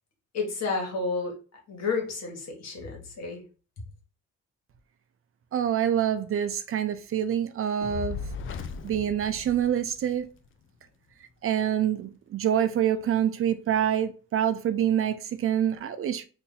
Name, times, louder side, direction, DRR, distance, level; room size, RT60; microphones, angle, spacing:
voice 1, 0.3-1.3 1.7-3.4, left 4 dB, 60° left, 1.5 m, -31 dB
voice 2, 5.5-8.2 8.8-10.2 11.4-16.3, right 9 dB, 45° right, 0.5 m, -26 dB
Fire, 7.8-10.3, left 6 dB, 45° left, 0.4 m, -37 dB
2.7 x 2.6 x 3.9 m
cardioid pair, 90°, 30 cm